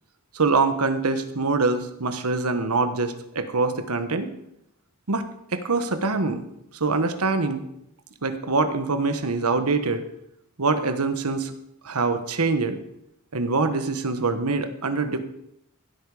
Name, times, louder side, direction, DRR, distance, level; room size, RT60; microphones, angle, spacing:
voice 1, 0.3-4.3 5.1-5.2 5.5-6.5 6.7-7.6 8.2-10.0 10.6-11.5 11.8-12.8 13.3-15.2, right 3 dB, 85° right, 9 dB, 1.2 m, -24 dB
15.5 x 8.4 x 4.9 m, 0.79 s
head